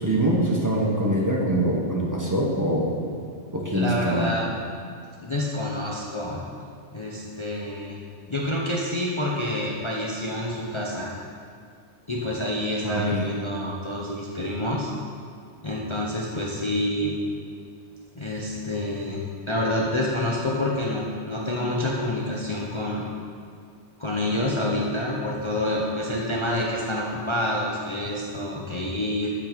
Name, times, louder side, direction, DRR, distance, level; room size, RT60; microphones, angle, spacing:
voice 1, 0.0-3.0 3.5-4.3 12.8-13.2, right 1 dB, 15° right, -3 dB, 1.3 m, -24 dB
voice 2, 3.7-4.5 5.2-6.5 6.9-8.0 8.3-11.1 12.1-14.9 15.6-17.2 18.1-23.0 24.0-29.3, left 1 dB, 25° left, -3 dB, 1.0 m, -27 dB
14.0 x 5.7 x 5.3 m, 2.2 s
omnidirectional pair, 1.2 m